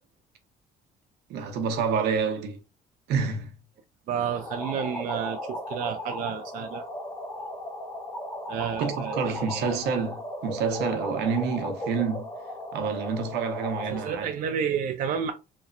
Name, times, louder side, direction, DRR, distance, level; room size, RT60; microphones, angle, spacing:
voice 1, 1.3-2.6 3.1-3.5 8.8-12.3 12.7-14.3, right 5 dB, 80° right, 0.7 m, -28 dB
voice 2, 4.1-6.8 8.5-9.7 13.9-15.3, right 8 dB, 55° right, 0.4 m, -31 dB
sound 1, 4.2-14.2, equal, 20° left, 0.9 m, -36 dB
2.9 x 2.0 x 2.5 m
cardioid pair, 110°, 17 cm